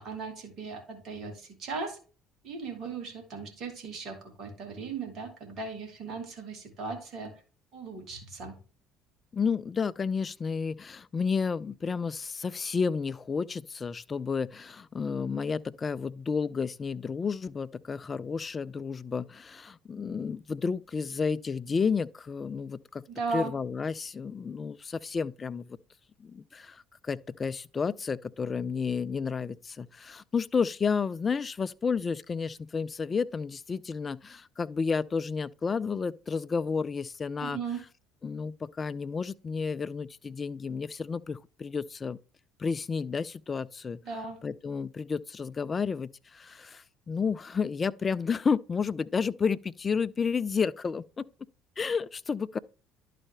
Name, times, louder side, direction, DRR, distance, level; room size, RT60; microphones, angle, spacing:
voice 1, 0.0-2.0 2.4-7.4 7.7-8.6 23.1-23.6 37.4-37.8 44.0-44.4, right 4 dB, 50° right, 2.0 m, -37 dB
voice 2, 9.3-23.0 23.3-25.8 26.2-37.6 38.2-42.2 42.6-44.0 44.4-51.3 51.8-52.6, left 5 dB, 30° left, 0.3 m, -31 dB
11.0 x 4.2 x 3.3 m
figure-of-eight pair, 55°, 0 cm